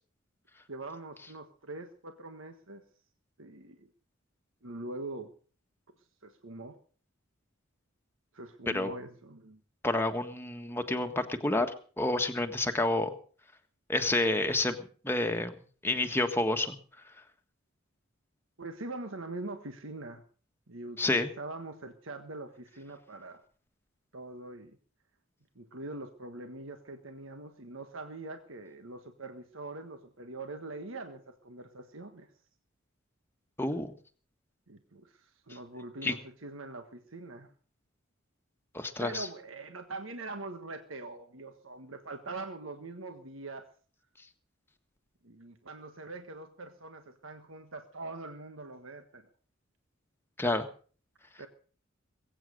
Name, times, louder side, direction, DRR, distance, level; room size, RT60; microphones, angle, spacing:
voice 1, 0.7-2.8 3.4-3.9 4.6-5.3 6.2-6.8 8.3-9.6 18.6-20.2 20.7-23.4 24.1-24.8 25.5-32.3 34.7-37.5 39.0-43.6 45.2-49.3 51.4-51.5, right 2 dB, 70° right, 7 dB, 1.5 m, -43 dB
voice 2, 9.8-11.7 12.0-13.1 13.9-14.8 15.0-16.8 21.0-21.3 33.6-33.9 36.0-36.1 38.7-39.3 50.4-50.7, left 2 dB, 10° left, 5 dB, 1.5 m, -29 dB
21.5 x 9.0 x 6.4 m, 0.43 s
head